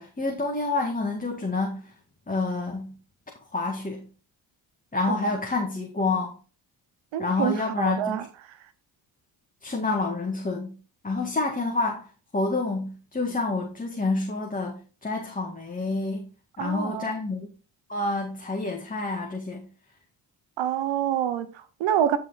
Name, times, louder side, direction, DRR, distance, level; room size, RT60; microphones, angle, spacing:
voice 1, 0.0-1.9 2.3-2.9 3.5-4.1 4.9-6.4 7.2-8.3 9.6-10.7 11.0-12.1 12.3-16.3 16.6-17.5 17.9-19.7, left 3 dB, 20° left, 1.8 m, -28 dB
voice 2, 7.1-8.3 16.6-17.1 20.6-22.2, right 10 dB, 80° right, 1.1 m, -27 dB
10.5 x 4.7 x 4.0 m
cardioid pair, 75°, 45 cm